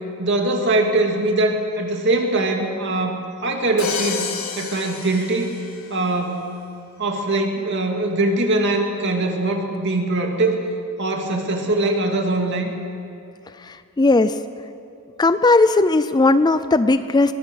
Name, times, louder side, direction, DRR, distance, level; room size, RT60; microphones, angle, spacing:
voice 1, 0.2-4.3 4.6-5.5 5.9-6.5 7.0-10.6 11.0-12.7, right 2 dB, 55° right, 2 dB, 2.4 m, -22 dB
Crash cymbal, 3.8-6.0, left 5 dB, 70° left, 2.1 m, -30 dB
voice 2, 13.6-14.4 15.2-17.3, left 2 dB, 20° left, 12 dB, 0.4 m, -17 dB
23.0 x 18.0 x 6.4 m, 2.5 s
head